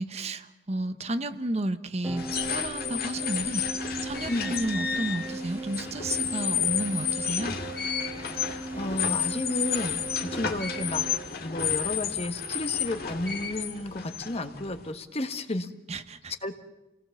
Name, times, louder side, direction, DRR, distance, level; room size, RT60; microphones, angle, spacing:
voice 1, 0.0-7.6 15.9-16.3, right 1 dB, 40° right, 10 dB, 1.0 m, -32 dB
sound 1, 2.0-11.2, right 2 dB, 15° right, 1.8 m, -38 dB
sound 2, 2.2-14.9, left 8 dB, 60° left, 2.3 m, -31 dB
voice 2, 8.4-11.0 11.4-15.7 16.4-16.5, left 1 dB, 35° left, 8 dB, 1.4 m, -32 dB
29.0 x 18.5 x 7.2 m, 1.0 s
head